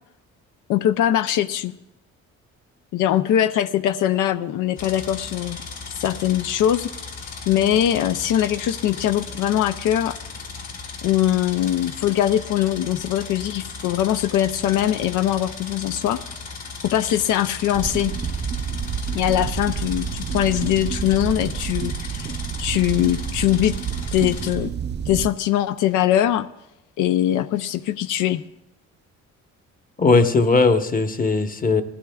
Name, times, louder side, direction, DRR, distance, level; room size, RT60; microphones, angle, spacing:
voice 1, 0.7-1.7 2.9-5.6 6.0-6.9 7.5-10.2 11.0-16.2 16.8-18.1 19.1-23.8 24.1-24.7 25.1-26.5 27.0-28.4, left 11 dB, 85° left, 12 dB, 0.5 m, -22 dB
sound 1, 4.8-24.5, left 4 dB, 65° left, 4.4 m, -36 dB
sound 2, 17.7-25.3, right 7 dB, 35° right, 0.5 m, -29 dB
voice 2, 30.0-31.8, left 3 dB, 30° left, 8 dB, 1.0 m, -18 dB
19.5 x 15.5 x 2.3 m, 0.90 s
cardioid pair, 90°, 30 cm